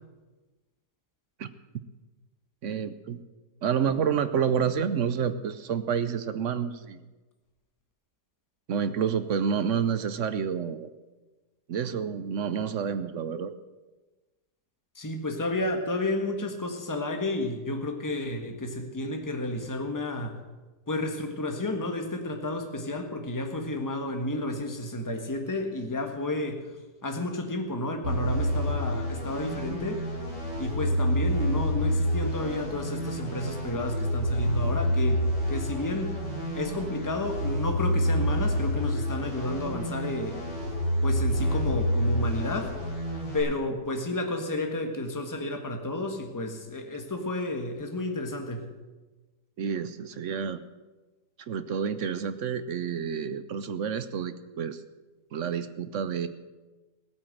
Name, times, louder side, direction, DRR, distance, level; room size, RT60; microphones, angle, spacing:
voice 1, 2.6-3.2 3.6-7.0 8.7-10.9 11.7-13.5 49.6-50.6 51.5-54.8 55.3-56.3, right 7 dB, 60° right, 13 dB, 0.9 m, -29 dB
voice 2, 14.9-20.4 20.9-26.6 27.0-30.0 30.6-36.2 36.5-40.4 41.0-42.8 43.3-48.7, left 2 dB, 10° left, 4 dB, 1.4 m, -31 dB
sound 1, 28.0-43.4, equal, 90° right, 7.1 m, -28 dB
16.5 x 8.9 x 7.7 m, 1.2 s
omnidirectional pair, 1.8 m